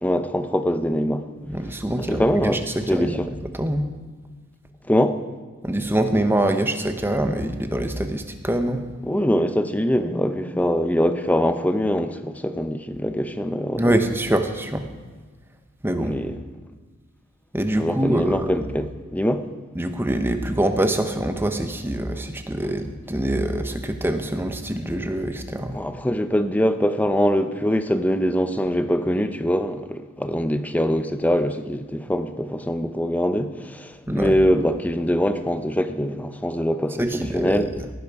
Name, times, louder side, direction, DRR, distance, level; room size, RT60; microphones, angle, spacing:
voice 1, 0.0-1.2 2.0-3.3 4.9-5.2 9.0-14.0 16.0-16.4 17.8-19.5 25.7-37.7, equal, 5° left, 10 dB, 0.6 m, -23 dB
voice 2, 1.5-3.2 3.5-3.8 5.6-8.8 13.8-14.9 15.8-16.2 17.5-18.5 19.8-25.8 34.1-34.4 37.0-37.7, right 1 dB, 10° right, 7 dB, 0.9 m, -24 dB
18.0 x 10.5 x 4.8 m, 1.4 s
head